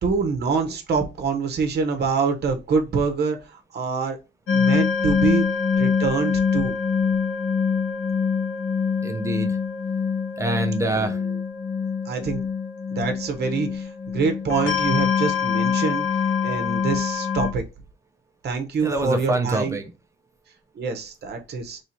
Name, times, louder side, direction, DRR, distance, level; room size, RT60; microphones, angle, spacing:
voice 1, 0.0-4.2 4.5-5.5 5.8-6.7 10.8-11.1 12.1-12.4 12.9-16.1 16.4-17.6 18.4-19.8 20.7-21.8, right 5 dB, 50° right, 0.8 m, -25 dB
sound 1, 4.5-17.5, left 6 dB, 70° left, 0.9 m, -24 dB
voice 2, 9.0-9.6 10.4-11.2 18.8-19.9, right 2 dB, 15° right, 0.5 m, -25 dB
3.1 x 2.8 x 4.3 m
cardioid pair, 145°, 21 cm